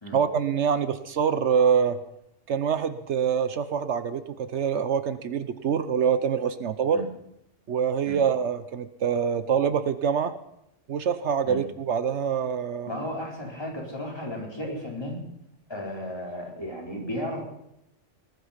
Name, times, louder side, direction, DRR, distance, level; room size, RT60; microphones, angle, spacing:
voice 1, 0.1-2.0 2.5-7.0 7.7-10.4 10.9-13.0, right 7 dB, 70° right, 12 dB, 1.1 m, -25 dB
voice 2, 12.9-15.2 15.7-17.4, left 1 dB, 20° left, -2 dB, 4.1 m, -34 dB
19.5 x 12.0 x 5.8 m, 0.80 s
omnidirectional pair, 1.2 m